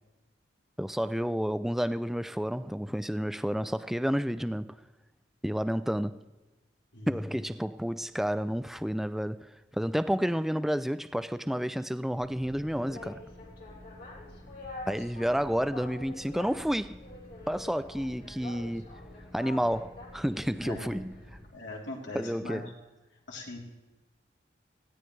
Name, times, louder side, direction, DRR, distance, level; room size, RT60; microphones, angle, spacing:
voice 1, 0.8-4.8 5.4-6.2 7.1-13.2 14.9-17.0 17.5-18.9 19.3-21.2 22.1-22.7, equal, ahead, 0.4 m, -30 dB
Boat Water vehicle, 12.2-21.5, left 2 dB, 55° left, 3.2 m, -46 dB
voice 2, 20.6-20.9 21.5-22.6 23.3-23.6, left 2 dB, 85° left, 3.5 m, -40 dB
20.0 x 15.5 x 3.3 m
head